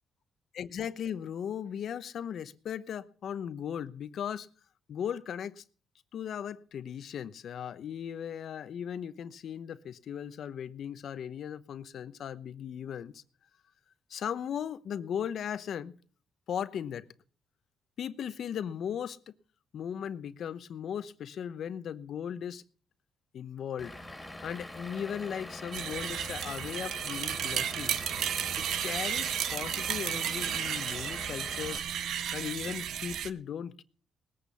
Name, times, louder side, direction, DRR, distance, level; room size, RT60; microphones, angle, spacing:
voice 1, 0.5-4.5 4.9-5.6 6.1-13.2 14.1-16.0 16.5-17.1 18.0-19.3 19.7-22.6 23.3-24.0 24.4-28.1 28.6-31.9 32.3-33.8, left 8 dB, 65° left, 0.9 m, -37 dB
Vehicle / Engine, 23.8-31.8, left 1 dB, 10° left, 2.9 m, -44 dB
sound 1, 25.7-33.3, right 9 dB, 75° right, 0.9 m, -33 dB
19.5 x 8.4 x 5.6 m
cardioid pair, 90°, 0 cm